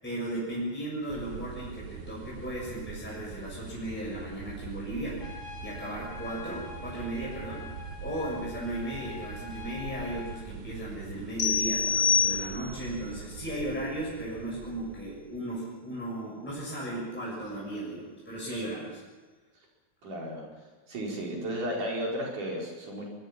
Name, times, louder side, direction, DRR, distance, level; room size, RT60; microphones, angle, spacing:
voice 1, 0.0-5.3 5.6-19.0, right 1 dB, 5° left, -5 dB, 6.7 m, -36 dB
sound 1, 1.1-15.4, right 7 dB, 75° right, 3.0 m, -43 dB
Trumpet, 5.2-10.4, left 6 dB, 40° left, 3.1 m, -45 dB
sound 2, 11.4-12.9, left 6 dB, 75° left, 3.9 m, -26 dB
voice 2, 20.0-20.4 20.9-23.1, equal, 60° right, -2 dB, 6.1 m, -33 dB
25.5 x 23.0 x 5.9 m, 1.3 s
omnidirectional pair, 4.2 m